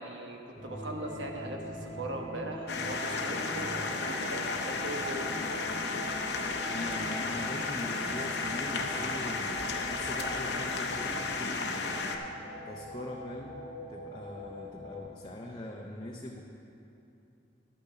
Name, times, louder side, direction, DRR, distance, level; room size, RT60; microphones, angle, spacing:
voice 1, 0.0-5.3, right 2 dB, 75° right, 2 dB, 1.2 m, -40 dB
sound 1, 0.6-15.0, right 1 dB, 40° right, 2.6 m, -42 dB
sound 2, 2.7-12.2, left 4 dB, 65° left, 0.8 m, -33 dB
voice 2, 6.7-9.6 9.9-12.2 12.7-13.6 13.9-16.4, left 1 dB, 25° left, -2 dB, 0.6 m, -42 dB
12.0 x 6.8 x 5.7 m, 2.8 s
head